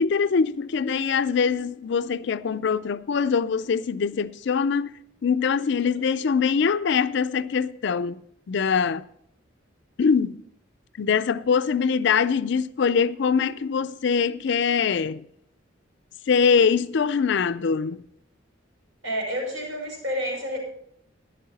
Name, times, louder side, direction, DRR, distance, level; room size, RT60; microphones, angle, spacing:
voice 1, 0.0-4.9 5.2-8.2 8.5-9.0 10.0-10.4 11.0-15.2 16.3-18.0, left 6 dB, 65° left, 0.4 m, -23 dB
voice 2, 19.0-20.6, equal, 80° right, 5.5 m, -29 dB
11.5 x 11.0 x 4.1 m
head